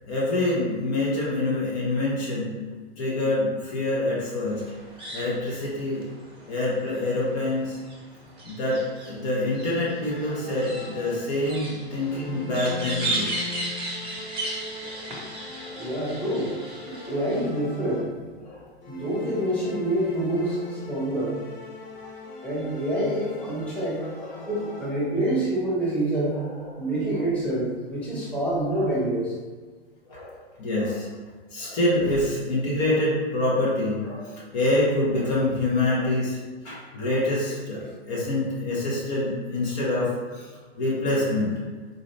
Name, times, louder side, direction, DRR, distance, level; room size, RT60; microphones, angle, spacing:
voice 1, 0.1-2.6 3.0-4.6 5.1-6.0 6.5-7.8 8.4-8.8 9.1-13.3 14.8-14.9 15.6-16.0 17.0-17.3 18.4-18.6 20.4-21.0 23.9-25.1 26.3-27.2 28.7-28.9 30.1-31.1 31.5-36.4 36.6-40.5 40.8-41.5, left 1 dB, 40° left, -6 dB, 1.1 m, -26 dB
sound 1, 4.5-17.5, right 2 dB, 15° right, 0.9 m, -36 dB
sound 2, 10.1-11.5 12.0-18.4 18.8-25.3, left 4 dB, 25° left, 0.8 m, -41 dB
voice 2, 15.7-16.5 16.9-18.1 18.9-21.3 22.4-24.0 24.5-26.3 26.8-29.3, right 1 dB, 5° left, -10 dB, 1.2 m, -27 dB
4.2 x 2.6 x 3.2 m, 1.4 s
figure-of-eight pair, 115°, 32 cm